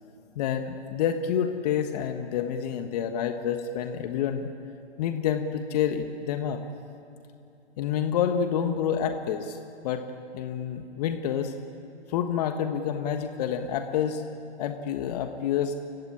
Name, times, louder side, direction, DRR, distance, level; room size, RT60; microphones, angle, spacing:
voice 1, 0.3-4.5 5.0-6.6 7.8-9.6 9.8-10.0 10.3-11.5 12.1-14.2 14.6-15.7, left 8 dB, 35° left, 7 dB, 1.4 m, -28 dB
29.0 x 16.5 x 9.9 m, 2.7 s
figure-of-eight pair, 125°, 34 cm